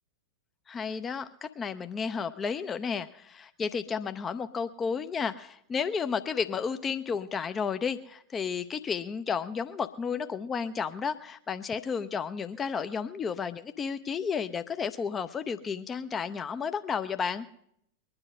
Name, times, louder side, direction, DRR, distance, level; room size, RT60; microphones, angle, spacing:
voice 1, 0.7-17.5, left 6 dB, 20° left, 10 dB, 0.5 m, -32 dB
21.5 x 9.8 x 5.4 m, 0.72 s
figure-of-eight pair, 90°, 0 cm